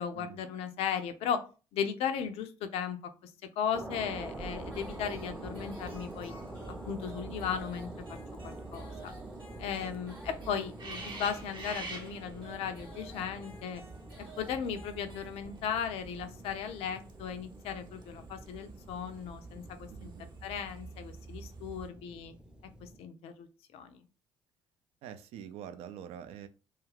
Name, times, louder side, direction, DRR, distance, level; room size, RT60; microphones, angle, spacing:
voice 1, 0.0-1.4 1.7-3.3 3.6-6.3 6.7-7.9 8.4-9.1 9.6-13.8 14.4-20.1 20.4-22.3 22.8-23.5 23.7-24.0, left 7 dB, 55° left, 9 dB, 0.4 m, -36 dB
sound 1, 3.7-23.0, right 1 dB, 5° right, 0.6 m, -47 dB
sound 2, 4.1-21.9, right 4 dB, 40° right, 0.8 m, -48 dB
sound 3, 4.7-15.8, right 1 dB, 90° right, 1.0 m, -54 dB
voice 2, 19.9-20.3 25.0-26.5, right 9 dB, 55° right, 10 dB, 0.4 m, -45 dB
2.4 x 2.3 x 3.2 m, 0.34 s
figure-of-eight pair, 50°, 12 cm